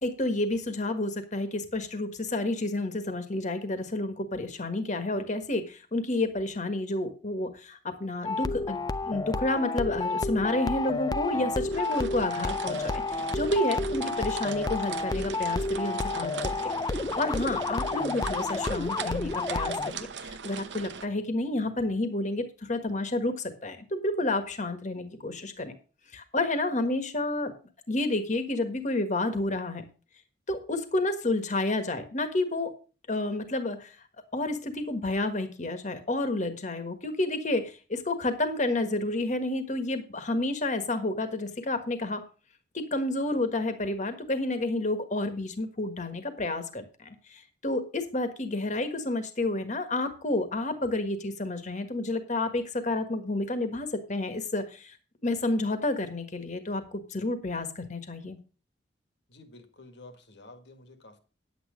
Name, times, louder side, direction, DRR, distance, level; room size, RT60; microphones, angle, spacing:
voice 1, 0.0-25.7 26.1-27.5 27.9-29.8 30.5-32.7 33.1-34.0 34.3-42.2 42.7-55.0 55.2-58.4, left 2 dB, 40° left, 1.5 m, -30 dB
sound 1, 8.2-19.9, left 3 dB, 20° left, 0.4 m, -30 dB
Hail Interior Light A, 11.7-21.1, right 6 dB, 70° right, 0.8 m, -41 dB
voice 2, 59.3-61.2, left 2 dB, 65° left, 1.8 m, -50 dB
10.0 x 8.7 x 5.1 m
head